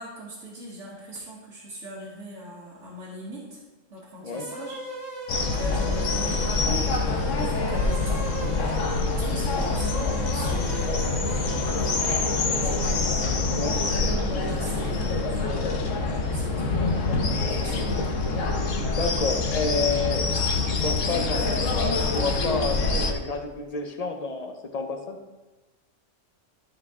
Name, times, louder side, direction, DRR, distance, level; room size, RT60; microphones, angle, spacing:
voice 1, 0.0-3.6 3.9-4.8 5.3-17.0 17.5-18.0, equal, 70° right, -6 dB, 1.8 m, -41 dB
sound 1, 4.3-13.0, right 1 dB, 35° right, 1.7 m, -37 dB
sound 2, 5.3-23.1, left 3 dB, 75° left, 1.2 m, -25 dB
voice 2, 18.9-20.4 20.6-21.5 22.1-25.2, left 3 dB, 40° left, 5 dB, 0.6 m, -29 dB
11.5 x 4.9 x 3.6 m, 1.2 s
omnidirectional pair, 1.3 m